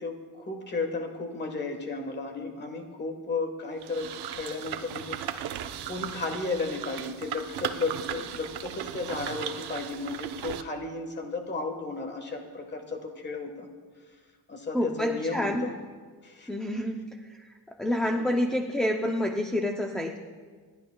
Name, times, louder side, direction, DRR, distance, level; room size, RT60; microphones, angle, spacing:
voice 1, 0.0-5.6 5.9-13.7 14.5-15.7 16.2-16.5 18.1-18.2, left 3 dB, 25° left, 4 dB, 1.3 m, -34 dB
sound 1, 3.8-10.6, right 10 dB, 70° right, 0.7 m, -37 dB
voice 2, 14.7-15.7 16.5-17.4 17.8-20.2, left 1 dB, ahead, 2 dB, 0.4 m, -28 dB
28.5 x 11.0 x 2.2 m, 1.5 s
cardioid pair, 175°, 41 cm